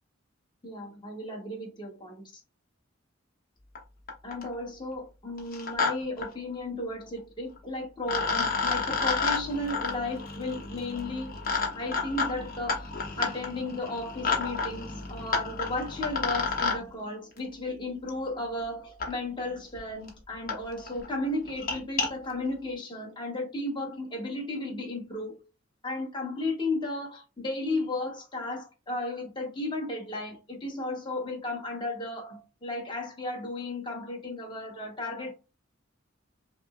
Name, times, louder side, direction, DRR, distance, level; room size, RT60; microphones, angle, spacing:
voice 1, 0.6-2.4 4.2-11.3 11.7-12.9 13.2-25.4 25.8-35.3, left 2 dB, 25° left, 1.1 m, -34 dB
sound 1, 3.7-3.8 4.1-4.5 5.4-5.9 6.2-6.3 7.6-7.7 8.1-16.8 18.1-18.2 19.0-19.1 19.8-19.9 20.1-20.2 20.5-20.6 20.9-21.1 21.5-22.1, left 4 dB, 50° left, 1.0 m, -30 dB
5.7 x 2.0 x 2.4 m
head